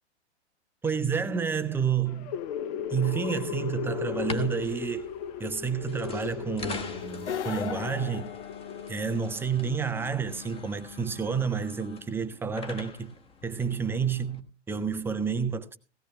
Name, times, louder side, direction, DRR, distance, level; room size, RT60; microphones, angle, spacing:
voice 1, 0.8-2.4 2.9-8.3 8.9-13.1 13.4-15.8, right 6 dB, 5° right, 0.5 m, -30 dB
sound 1, 2.1-9.3, left 8 dB, 35° left, 0.6 m, -36 dB
sound 2, 4.1-14.4, left 4 dB, 15° left, 1.2 m, -43 dB
sound 3, 7.1-9.2, left 7 dB, 80° left, 0.7 m, -36 dB
17.0 x 16.5 x 2.2 m
figure-of-eight pair, 110°, 35 cm